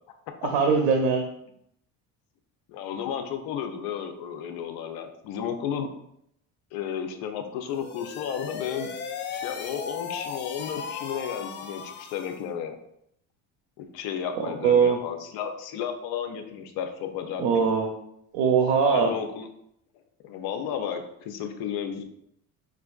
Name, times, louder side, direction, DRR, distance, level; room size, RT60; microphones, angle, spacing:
voice 1, 0.5-1.2 14.6-15.0 17.4-17.9 18.3-19.1, right 6 dB, 85° right, 3 dB, 0.6 m, -21 dB
voice 2, 2.7-5.9 6.7-8.9 9.3-12.8 13.8-17.7 18.9-19.5 20.2-22.0, left 8 dB, 80° left, 6 dB, 0.6 m, -33 dB
sound 1, 7.7-12.5, left 6 dB, 30° left, 0.4 m, -37 dB
5.1 x 2.4 x 2.3 m, 0.74 s
cardioid pair, 110°, 37 cm